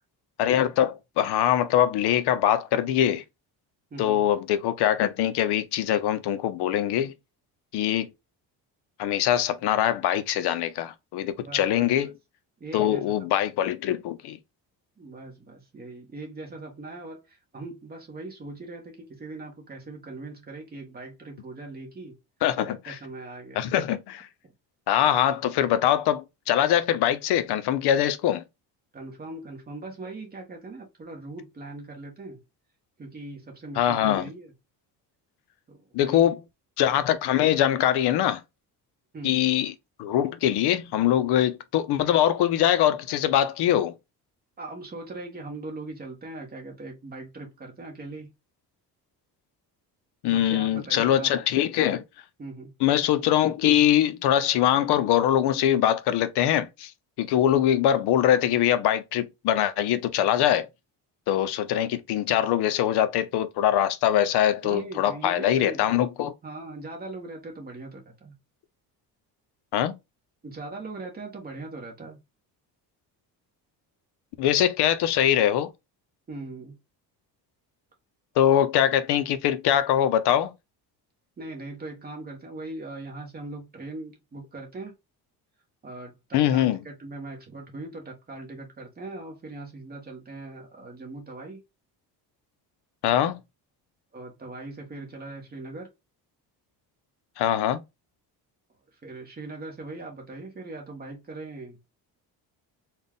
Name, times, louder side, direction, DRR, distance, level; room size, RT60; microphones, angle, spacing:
voice 1, 0.4-3.2 4.0-7.1 7.7-8.1 9.0-12.1 12.7-14.4 22.4-23.0 23.6-24.3 24.9-28.4 33.8-34.2 35.9-36.4 36.8-38.4 39.2-39.7 40.0-43.9 50.2-52.0 52.8-56.9 57.2-60.7 61.3-66.3 69.7-69.9 74.4-75.7 78.4-80.5 86.3-86.8 93.0-93.4 97.4-97.8, left 11 dB, 80° left, 0.7 m, -23 dB
voice 2, 3.9-4.2 11.4-11.9 12.6-13.1 15.0-22.2 22.7-23.7 28.9-32.4 33.0-34.5 35.7-36.3 39.1-39.4 44.6-48.3 50.3-51.3 52.4-52.7 64.6-65.9 66.4-68.4 70.4-72.2 76.3-76.8 81.4-84.9 85.8-91.6 94.1-95.9 99.0-101.9, right 2 dB, 25° right, 1.2 m, -40 dB
4.1 x 2.4 x 3.5 m
cardioid pair, 180°, 39 cm